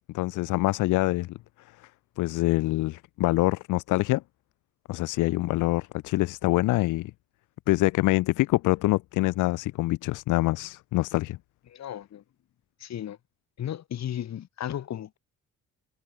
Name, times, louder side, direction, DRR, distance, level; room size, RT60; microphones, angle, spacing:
voice 1, 0.1-1.4 2.2-4.2 4.9-7.1 7.7-11.4, left 19 dB, 80° left, 0.5 m, -25 dB
voice 2, 11.7-12.2 12.8-13.2 13.6-15.2, left 10 dB, 60° left, 2.1 m, -35 dB
cardioid pair, 90°, 30 cm